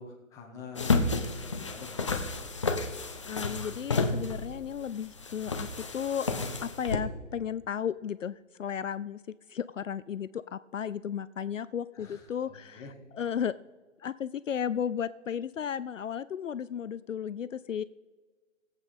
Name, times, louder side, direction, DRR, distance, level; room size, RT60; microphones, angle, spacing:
voice 1, 0.0-2.2 11.9-12.9, left 5 dB, 10° left, 0 dB, 1.2 m, -47 dB
sound 1, 0.7-7.0, left 3 dB, 25° left, 0.6 m, -31 dB
voice 2, 3.2-5.7 5.9-6.3 6.6-9.2 9.5-12.8 13.1-13.5 14.0-17.8, left 8 dB, 70° left, 16 dB, 0.5 m, -34 dB
16.5 x 8.1 x 4.2 m, 1.4 s
figure-of-eight pair, 140°, 39 cm